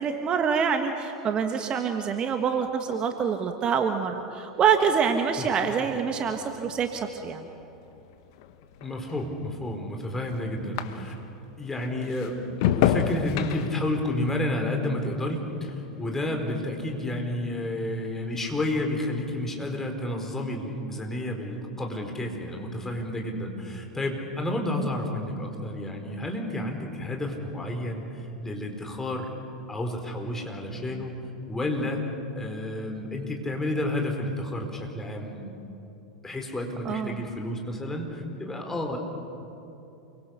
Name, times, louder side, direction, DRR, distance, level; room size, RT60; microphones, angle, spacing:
voice 1, 0.0-7.5 36.8-37.2, right 6 dB, 30° right, 6 dB, 1.6 m, -26 dB
sound 1, 4.7-11.4 11.8-16.3 16.6-17.1, left 10 dB, 55° left, 1.3 m, -32 dB
voice 2, 8.8-11.2 11.6-29.3 29.7-31.2 31.5-32.0 32.3-35.6 36.2-39.0, left 1 dB, 15° left, 2 dB, 4.6 m, -31 dB
29.0 x 23.5 x 6.7 m, 2.9 s
figure-of-eight pair, 85°, 3 cm